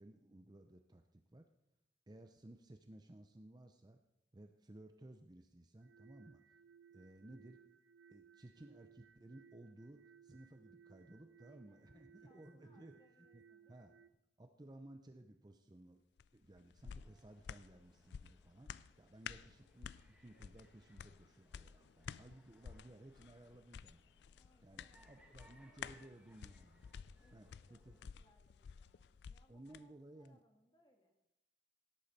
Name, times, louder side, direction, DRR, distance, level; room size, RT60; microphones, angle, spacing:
voice 1, 0.0-1.5 2.1-4.0 4.3-6.4 6.9-7.6 8.1-13.0 13.3-13.4 13.7-13.9 14.4-16.0 16.3-18.7 19.0-19.9 20.2-24.0 24.6-26.8 27.3-28.0 29.5-30.4, right 1 dB, 20° right, 6 dB, 0.6 m, -58 dB
sound 1, 5.8-14.1, right 7 dB, 75° right, 0.4 m, -64 dB
voice 2, 11.4-14.0 24.4-26.1 27.2-31.2, left 1 dB, 25° left, 3 dB, 1.7 m, -73 dB
sound 2, 16.2-29.8 30.2-30.3, left 7 dB, 60° left, 0.3 m, -53 dB
sound 3, 16.9-28.1, right 1 dB, 5° right, 1.4 m, -71 dB
17.5 x 8.5 x 4.2 m, 0.86 s
head